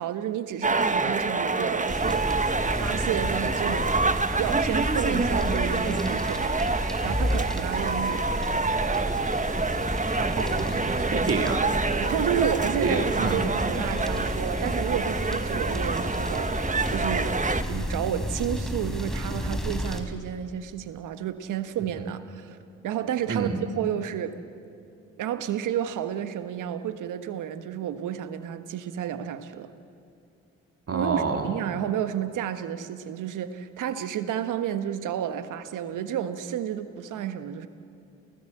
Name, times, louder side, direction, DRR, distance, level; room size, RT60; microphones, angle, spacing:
voice 1, 0.0-3.9 4.4-8.3 12.0-17.3 17.6-22.6 22.8-24.4 25.2-29.7 30.9-37.7, right 10 dB, 70° right, 10 dB, 1.4 m, -31 dB
sound 1, 0.6-17.6, right 3 dB, 25° right, 1.5 m, -27 dB
sound 2, 1.9-20.0, equal, ahead, 4.5 m, -32 dB
voice 2, 10.2-11.7 12.8-13.8 23.3-23.6 30.9-31.5, right 4 dB, 45° right, 3 dB, 3.0 m, -28 dB
28.0 x 18.0 x 8.8 m, 2.6 s
hypercardioid pair, 45°, 32 cm